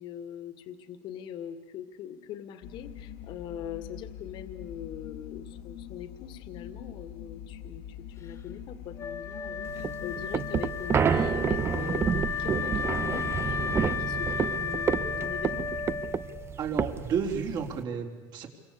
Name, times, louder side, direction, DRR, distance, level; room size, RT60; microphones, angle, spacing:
voice 1, 0.0-7.8 8.2-15.7, left 9 dB, 55° left, 9 dB, 2.1 m, -42 dB
sound 1, 2.6-14.1, left 10 dB, 75° left, 1.5 m, -44 dB
Wind instrument woodwind instrument, 9.0-16.5, left 7 dB, 30° left, 1.9 m, -34 dB
sound 2, 9.7-17.8, right 7 dB, 25° right, 0.8 m, -29 dB
voice 2, 16.6-18.5, right 6 dB, 45° right, 3 dB, 4.2 m, -31 dB
28.5 x 24.5 x 8.5 m, 1.3 s
cardioid pair, 150°, 10 cm